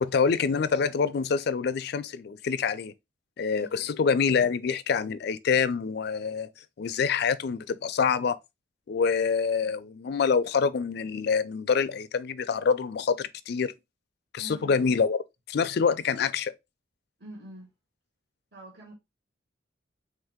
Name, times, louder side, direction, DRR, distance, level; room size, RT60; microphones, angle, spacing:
voice 1, 0.0-2.9 3.4-6.5 6.8-8.4 8.9-13.7 14.3-15.2 15.5-16.5, left 5 dB, 60° left, 0.4 m, -26 dB
voice 2, 14.4-14.9 17.2-17.7 18.5-18.9, equal, 55° right, 1.6 m, -45 dB
3.7 x 2.7 x 3.5 m
head